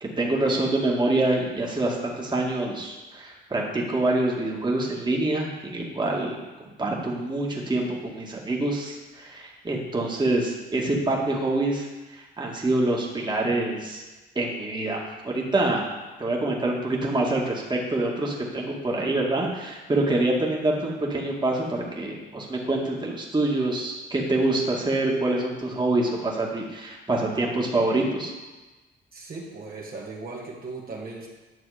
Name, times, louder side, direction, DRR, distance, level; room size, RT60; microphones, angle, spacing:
voice 1, 0.0-14.0 14.4-15.0 15.2-15.9 16.2-28.3, right 2 dB, 20° right, -2 dB, 2.0 m, -26 dB
voice 2, 29.1-31.3, right 3 dB, 50° right, -2 dB, 1.9 m, -37 dB
10.5 x 6.7 x 5.1 m, 1.2 s
cardioid pair, 90°, 20 cm